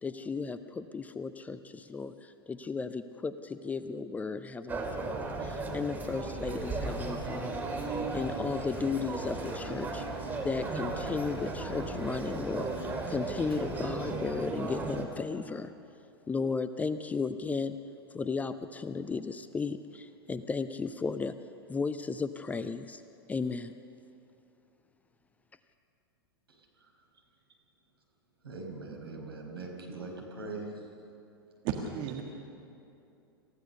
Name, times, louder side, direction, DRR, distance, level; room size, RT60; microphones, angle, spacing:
voice 1, 0.0-10.1 10.4-15.7 16.3-17.8 18.1-21.3 21.7-23.0 23.3-23.7, left 4 dB, 10° left, 12 dB, 0.6 m, -35 dB
sound 1, 4.7-15.1, right 3 dB, 15° right, 2.5 m, -36 dB
Mechanical fan, 6.4-15.5, left 1 dB, 80° left, 3.4 m, -48 dB
voice 2, 28.4-30.6, right 3 dB, 70° right, 0 dB, 5.0 m, -41 dB
voice 3, 31.6-32.2, right 8 dB, 40° right, 2 dB, 1.7 m, -33 dB
27.0 x 15.5 x 6.8 m, 2.7 s
figure-of-eight pair, 95°, 13 cm